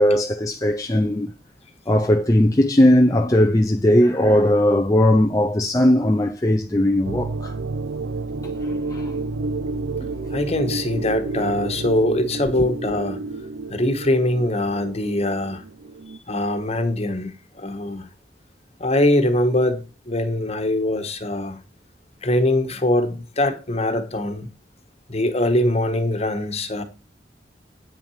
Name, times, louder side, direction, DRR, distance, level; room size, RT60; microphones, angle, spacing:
voice 1, 0.0-1.3 1.9-7.5 8.4-9.1 10.0-10.1, left 1 dB, 20° left, 0.6 m, -18 dB
sound 1, 7.0-16.2, right 3 dB, 85° right, 0.6 m, -30 dB
voice 2, 10.3-13.2 13.7-15.6 16.3-18.1 18.8-21.6 22.2-24.5 25.1-26.8, left 1 dB, 35° left, 1.5 m, -22 dB
9.0 x 7.3 x 4.9 m
head